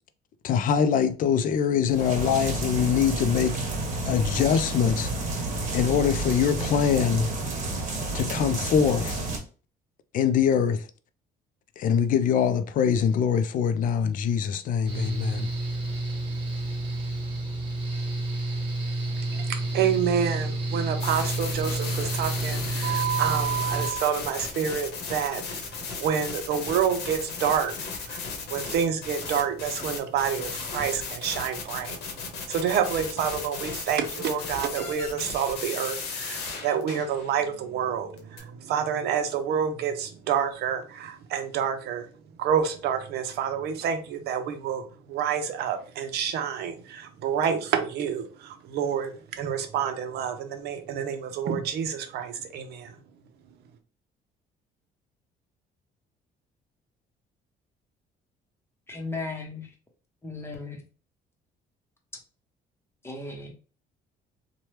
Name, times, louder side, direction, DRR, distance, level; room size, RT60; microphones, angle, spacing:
voice 1, 0.4-3.6 4.1-5.1 5.7-7.3 8.1-9.2 10.1-10.8 11.8-15.5, left 7 dB, 55° left, 0.4 m, -23 dB
sound 1, 1.9-9.4, right 2 dB, 50° right, 1.3 m, -30 dB
Mechanical fan, 14.9-23.9, right 2 dB, 30° right, 1.1 m, -30 dB
voice 2, 19.3-25.4 25.7-27.7 28.1-32.0 32.5-42.1 42.4-52.9, right 8 dB, 75° right, 0.6 m, -28 dB
sound 2, 21.0-37.4 38.2-38.4, left 5 dB, 85° left, 0.9 m, -35 dB
voice 3, 58.9-59.7 60.2-60.8 63.0-63.5, left 3 dB, 15° left, 0.9 m, -36 dB
2.9 x 2.2 x 3.2 m
cardioid pair, 110°, 17 cm